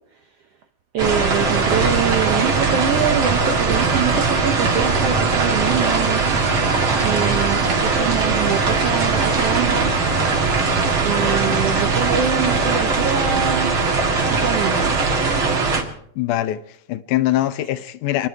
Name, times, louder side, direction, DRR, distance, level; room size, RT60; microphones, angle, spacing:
voice 1, 0.9-6.2 7.0-9.9 11.0-14.9, right 9 dB, 80° right, 1.4 m, -25 dB
sound 1, 1.0-15.8, right 4 dB, 40° right, 2.5 m, -20 dB
sound 2, 1.5-12.8, right 7 dB, 60° right, 2.4 m, -29 dB
voice 2, 16.2-18.3, left 14 dB, 75° left, 2.1 m, -22 dB
28.5 x 11.0 x 4.6 m
omnidirectional pair, 3.9 m